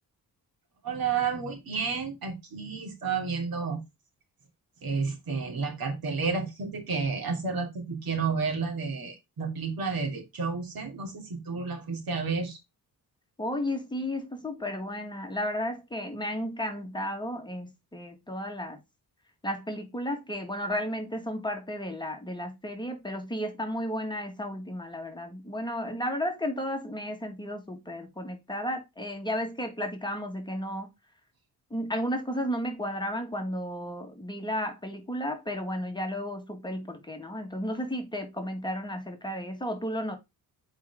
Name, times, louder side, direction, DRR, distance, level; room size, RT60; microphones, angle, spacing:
voice 1, 0.8-3.8 4.8-12.6, right 5 dB, 70° right, 2.7 m, -31 dB
voice 2, 13.4-18.8 19.4-30.9 31.7-40.2, equal, 10° left, 1.6 m, -33 dB
7.5 x 4.9 x 3.5 m
wide cardioid pair, 130°, 37 cm